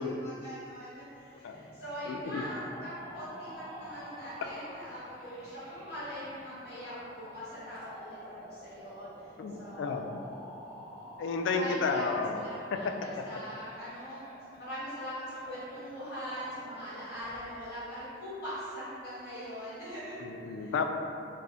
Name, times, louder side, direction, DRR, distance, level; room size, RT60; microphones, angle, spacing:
voice 1, 0.0-8.2 8.4-10.0 11.5-12.0 12.4-14.2 14.5-20.7, equal, 60° left, -12 dB, 1.3 m, -42 dB
sound 1, 1.5-17.5, equal, 30° left, 1.1 m, -49 dB
voice 2, 2.1-2.4 9.4-10.2 11.2-12.4 12.7-13.2 20.2-20.8, left 4 dB, 85° left, 4 dB, 0.3 m, -32 dB
5.1 x 2.0 x 2.6 m, 2.7 s
head